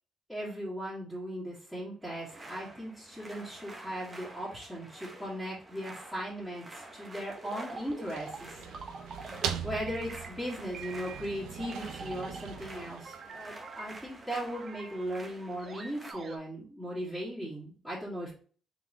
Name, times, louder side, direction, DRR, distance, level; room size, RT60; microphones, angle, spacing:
voice 1, 0.3-8.6 9.6-18.3, equal, ahead, -11 dB, 2.2 m, -38 dB
sound 1, 2.0-16.1, right 2 dB, 25° right, 1.1 m, -50 dB
sound 2, 7.4-9.5 9.8-10.5 10.7-12.6 13.0-16.4, right 4 dB, 40° right, 0.6 m, -46 dB
sound 3, 7.7-13.8, right 8 dB, 90° right, 0.5 m, -41 dB
4.0 x 3.5 x 2.9 m, 0.42 s
cardioid pair, 90°, 0 cm